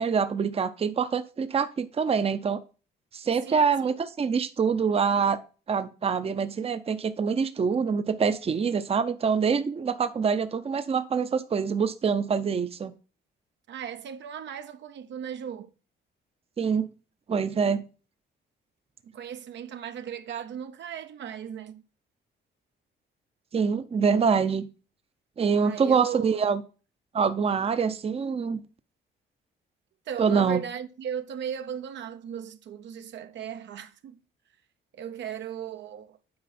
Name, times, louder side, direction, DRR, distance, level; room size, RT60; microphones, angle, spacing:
voice 1, 0.0-2.6 3.1-5.4 5.7-12.9 16.6-16.9 17.3-17.8 23.5-24.6 25.4-26.6 27.1-28.6 30.2-30.6, right 6 dB, 30° right, 0.6 m, -25 dB
voice 2, 3.5-3.9 13.7-15.7 19.0-21.8 25.6-26.4 27.8-27.9 30.1-34.2 34.9-36.2, right 8 dB, 65° right, 0.7 m, -37 dB
8.5 x 4.7 x 4.2 m
cardioid pair, 90°, 20 cm